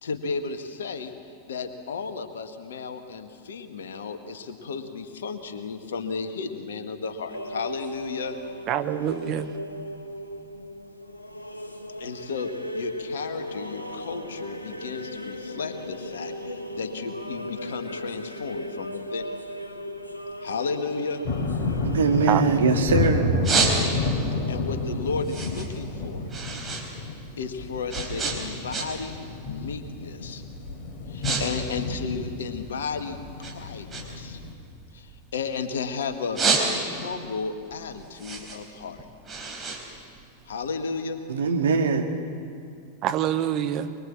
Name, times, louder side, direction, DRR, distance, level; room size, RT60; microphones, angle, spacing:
voice 1, 0.0-1.1 1.4-8.4 12.0-19.3 20.4-21.2 24.5-26.2 27.4-29.2 29.4-30.4 31.1-34.4 34.9-36.4 36.8-39.1 40.5-41.2, left 5 dB, 65° left, 7 dB, 1.8 m, -33 dB
sound 1, 7.3-24.9, equal, 85° left, 1.2 m, -37 dB
voice 2, 8.7-9.6 22.3-22.9 43.0-43.9, right 10 dB, 35° right, 9 dB, 1.1 m, -27 dB
Thunder, 21.2-34.5, left 3 dB, 40° left, 3.8 m, -30 dB
voice 3, 21.8-23.2 41.3-42.1, right 5 dB, 65° right, 3 dB, 2.2 m, -22 dB
sound 2, 23.4-24.2 24.7-26.9 27.1-29.2 29.5-29.8 30.4-30.6 30.9-31.4 31.7-32.9 33.4-35.7 36.1-37.2 37.6-40.7, right 4 dB, 20° right, 4.4 m, -29 dB
24.0 x 23.0 x 7.5 m, 2.4 s
figure-of-eight pair, 90°, 0 cm